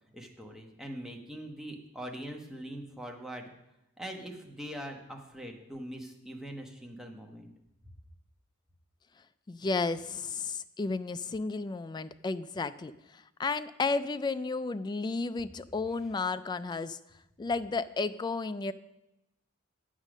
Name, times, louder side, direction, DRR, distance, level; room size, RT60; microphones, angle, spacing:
voice 1, 0.1-3.5 4.0-7.5, equal, ahead, 1 dB, 1.0 m, -42 dB
voice 2, 9.5-17.0 17.4-18.7, left 3 dB, 20° left, 13 dB, 0.3 m, -33 dB
8.3 x 6.4 x 6.1 m, 0.89 s
head